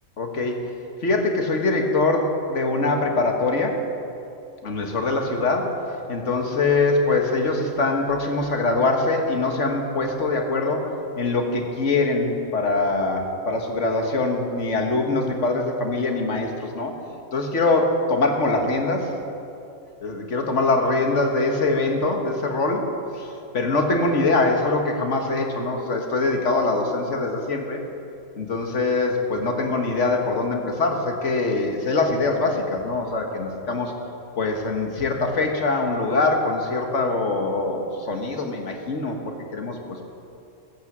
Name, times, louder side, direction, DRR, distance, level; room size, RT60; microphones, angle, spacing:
voice 1, 0.2-0.7 1.0-3.9 4.6-16.9 17.3-19.2 20.0-27.8 28.4-33.9 34.4-40.0, left 3 dB, 55° left, 3 dB, 1.7 m, -23 dB
14.5 x 9.0 x 7.3 m, 2.7 s
omnidirectional pair, 1.5 m